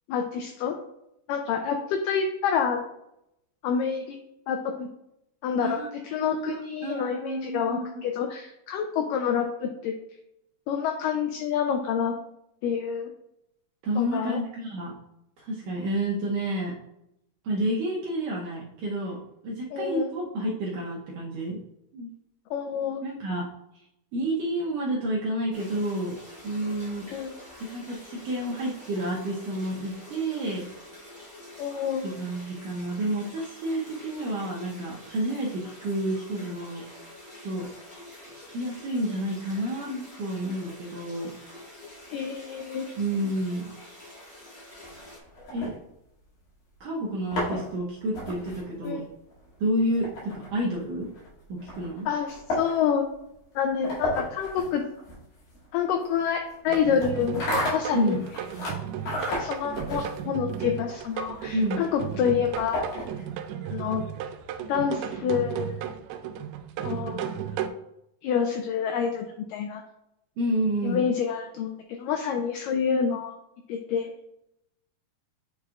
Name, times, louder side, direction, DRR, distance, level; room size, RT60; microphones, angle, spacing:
voice 1, 0.1-0.7 1.3-2.8 3.6-4.2 4.5-4.9 5.4-9.9 10.7-12.1 12.6-13.1 14.0-14.4 19.7-20.1 22.5-23.0 27.1-27.3 31.6-32.1 39.9-40.0 42.1-42.9 48.8-49.1 52.1-53.0 53.6-54.8 55.7-57.4 57.7-58.2 59.2-62.8 63.7-64.0 64.7-65.7 66.8-67.3 68.2-69.8 70.8-73.4 73.7-74.1, left 7 dB, 85° left, 4 dB, 1.9 m, -28 dB
voice 2, 5.6-7.9 13.8-15.0 15.4-16.7 17.4-21.6 21.9-22.1 23.0-23.5 24.1-26.2 26.4-27.1 27.6-30.7 32.0-37.1 37.4-37.7 38.3-39.9 40.2-41.3 43.0-43.7 45.5-45.7 46.8-49.0 49.6-51.1 51.5-52.1 57.9-58.2 61.5-61.8 70.4-71.0, right 1 dB, 70° right, -4 dB, 2.1 m, -30 dB
sound 1, 25.5-45.2, left 1 dB, 35° left, 0.7 m, -47 dB
sound 2, 44.8-46.4 47.1-63.4, left 1 dB, 65° left, 4.0 m, -35 dB
sound 3, 56.7-67.7, right 9 dB, 90° right, 2.5 m, -35 dB
8.6 x 4.8 x 2.4 m, 0.81 s
omnidirectional pair, 4.4 m